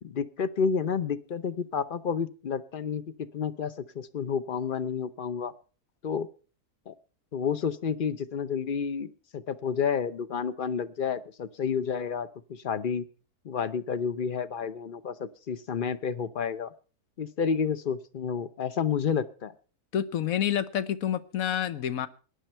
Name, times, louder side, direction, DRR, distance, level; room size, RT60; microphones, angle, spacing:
voice 1, 0.0-5.5 6.0-6.3 6.9-7.0 7.3-13.0 13.4-16.7 17.2-19.5, left 6 dB, 40° left, 13 dB, 0.8 m, -30 dB
voice 2, 19.9-22.1, left 10 dB, 65° left, 14 dB, 1.3 m, -28 dB
18.0 x 11.5 x 4.4 m, 0.37 s
omnidirectional pair, 1.7 m